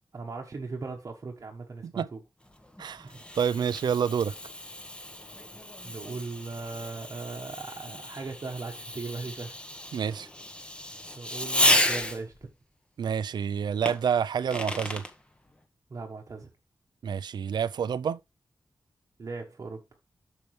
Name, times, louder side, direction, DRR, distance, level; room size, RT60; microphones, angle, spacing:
voice 1, 0.1-2.2 3.0-3.2 5.8-9.5 11.2-12.5 15.9-16.5 19.2-19.8, right 4 dB, 45° right, 1.1 m, -38 dB
Fireworks, 2.5-12.4 13.9-15.1, left 1 dB, 15° left, 1.2 m, -32 dB
voice 2, 2.8-4.3 9.9-10.3 13.0-15.0 17.0-18.2, right 7 dB, 90° right, 0.5 m, -28 dB
8.8 x 6.7 x 3.2 m
wide cardioid pair, 125°, 7 cm